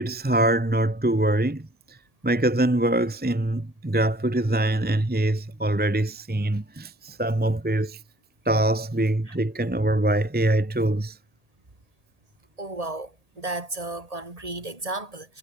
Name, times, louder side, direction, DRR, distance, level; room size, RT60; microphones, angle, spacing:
voice 1, 0.0-1.7 2.2-8.0 8.5-11.2, right 1 dB, 10° right, 0.8 m, -23 dB
voice 2, 12.6-15.4, right 2 dB, 35° right, 2.5 m, -34 dB
omnidirectional pair, 1.1 m